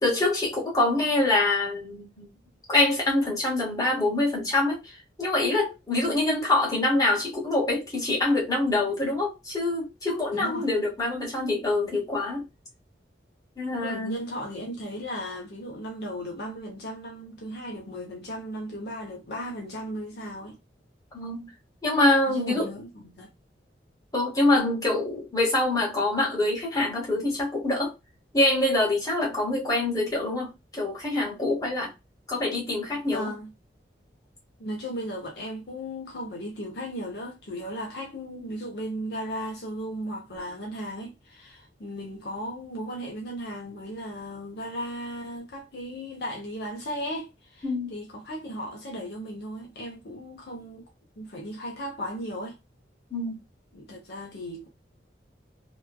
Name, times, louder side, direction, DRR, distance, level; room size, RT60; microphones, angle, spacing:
voice 1, 0.0-2.3 2.7-4.8 5.2-12.5 13.6-14.2 21.1-21.5 21.8-22.7 24.1-27.9 28.3-31.9 32.3-33.3 47.6-47.9 53.1-53.4, left 2 dB, 20° left, 1.3 m, -25 dB
voice 2, 10.3-10.7 13.7-20.6 22.3-23.3 29.3-29.5 33.1-33.5 34.6-50.9 51.2-52.6 53.7-54.7, equal, 65° left, 0.7 m, -36 dB
3.0 x 2.3 x 2.2 m
head